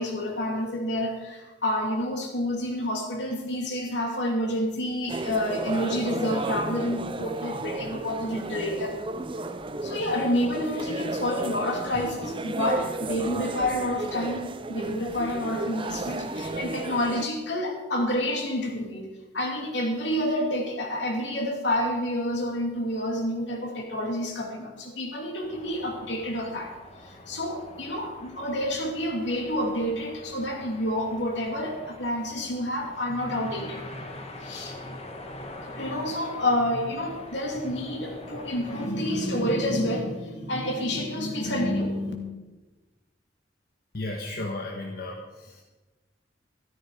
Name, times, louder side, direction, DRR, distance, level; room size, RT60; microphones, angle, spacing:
voice 1, 0.0-9.0 9.8-19.1 19.3-26.7 27.0-35.0 35.3-42.1, left 1 dB, 75° left, 1 dB, 2.9 m, -29 dB
sound 1, 5.1-17.3, right 2 dB, 30° right, 0.7 m, -33 dB
sound 2, 25.4-38.9, left 1 dB, 35° left, 1.7 m, -45 dB
voice 2, 43.9-45.6, left 2 dB, 60° left, 0 dB, 1.4 m, -34 dB
14.0 x 13.5 x 5.0 m, 1.2 s
head